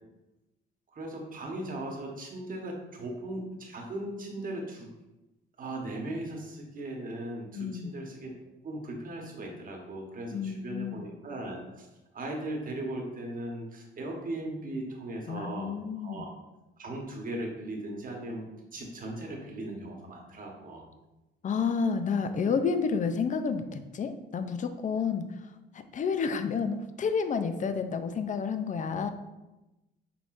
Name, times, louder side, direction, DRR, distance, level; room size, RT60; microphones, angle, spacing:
voice 1, 0.9-4.9 5.6-8.3 8.6-11.9 12.1-16.3 16.8-18.4 18.7-20.8, right 1 dB, 45° right, 0 dB, 1.1 m, -38 dB
voice 2, 7.5-7.9 10.3-11.0 15.3-16.3 21.4-25.3 25.7-29.1, left 5 dB, 40° left, 9 dB, 0.5 m, -30 dB
5.7 x 3.7 x 2.5 m, 1.0 s
cardioid pair, 90°, 20 cm